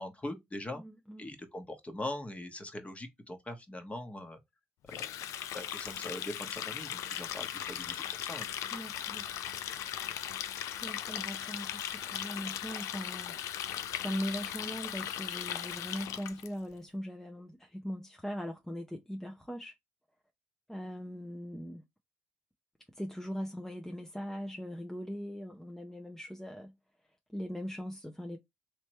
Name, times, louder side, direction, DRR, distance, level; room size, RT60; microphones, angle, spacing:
voice 1, 0.0-0.8 1.2-4.4 5.0-5.1 5.5-8.0 8.3-8.5, left 1 dB, 20° left, 1.2 m, -41 dB
voice 2, 0.7-1.3 8.7-9.4 10.8-13.3 13.9-19.7 20.7-21.8 22.9-26.7 27.3-28.4, equal, 5° left, 0.7 m, -40 dB
Water tap faucet, 4.9-16.5, left 10 dB, 65° left, 0.4 m, -38 dB
3.1 x 3.1 x 3.0 m
hypercardioid pair, 50°, 6 cm